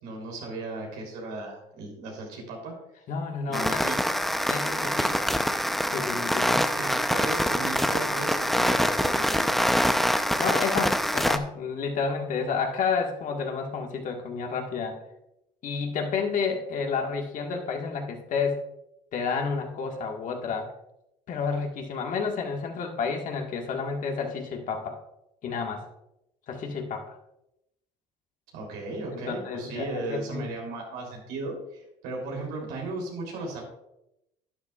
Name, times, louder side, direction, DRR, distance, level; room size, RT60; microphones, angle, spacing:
voice 1, 0.0-2.7 3.5-4.0 5.0-5.1 6.8-10.0 28.5-33.6, right 2 dB, 80° right, 0 dB, 3.5 m, -36 dB
voice 2, 3.1-4.0 4.5-5.1 5.9-6.7 10.4-15.0 15.6-18.6 19.1-20.7 21.3-25.0 25.4-25.9 26.5-27.2 29.1-30.5, left 5 dB, 55° left, 2 dB, 1.8 m, -30 dB
sound 1, 3.5-11.4, equal, ahead, 0.7 m, -25 dB
11.5 x 9.7 x 2.5 m, 0.85 s
supercardioid pair, 75°, 16 cm